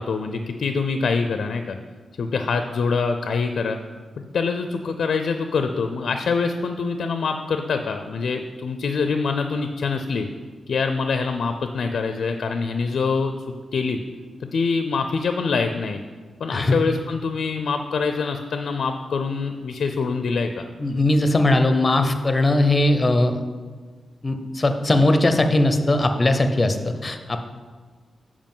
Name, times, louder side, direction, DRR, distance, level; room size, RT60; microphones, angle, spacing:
voice 1, 0.0-1.8 2.2-3.8 4.2-10.3 10.7-13.3 13.7-14.0 14.5-16.0 16.4-20.6, left 4 dB, 70° left, 7 dB, 0.4 m, -25 dB
voice 2, 20.8-23.4 24.2-27.4, left 2 dB, 25° left, 7 dB, 0.6 m, -19 dB
7.5 x 4.8 x 5.4 m, 1.5 s
wide cardioid pair, 145°, 0 cm